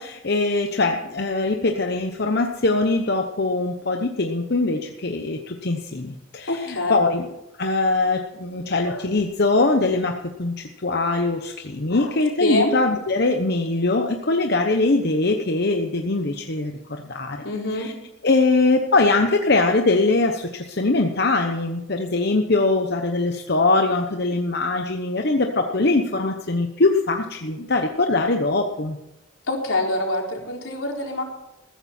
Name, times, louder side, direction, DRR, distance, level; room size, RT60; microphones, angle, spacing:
voice 1, 0.0-7.3 7.6-17.4 17.7-17.9 18.2-29.0, left 3 dB, 55° left, 4 dB, 1.0 m, -22 dB
voice 2, 6.5-7.0 8.8-9.0 11.9-12.1 12.4-12.7 17.4-17.9 29.5-31.2, left 2 dB, 80° left, 0 dB, 3.9 m, -25 dB
14.5 x 14.5 x 4.4 m, 0.92 s
head